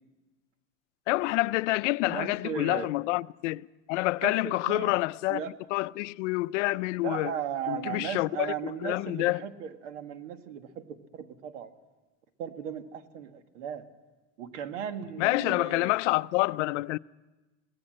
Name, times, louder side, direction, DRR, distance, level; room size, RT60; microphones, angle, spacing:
voice 1, 1.1-5.4 5.7-7.3 7.7-9.4 15.2-17.0, left 20 dB, 75° left, 0.6 m, -28 dB
voice 2, 2.1-2.9 4.2-4.9 5.3-5.5 7.0-11.7 12.4-13.9 14.4-15.9, right 8 dB, 85° right, 1.8 m, -36 dB
22.5 x 17.5 x 7.7 m
supercardioid pair, 155°, 36 cm